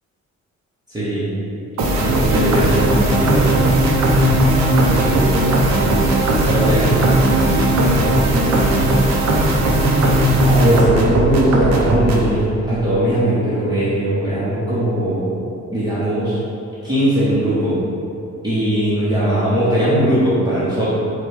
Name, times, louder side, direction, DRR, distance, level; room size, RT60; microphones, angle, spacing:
voice 1, 0.9-1.3 2.0-3.5 4.8-5.5 6.3-7.0 10.5-15.2 15.7-16.4 16.8-17.8 18.4-20.9, right 1 dB, 15° right, -12 dB, 0.9 m, -19 dB
sound 1, 1.8-12.3, right 1 dB, 70° right, 0.7 m, -16 dB
4.8 x 2.3 x 4.7 m, 2.7 s
cardioid pair, 140°, 29 cm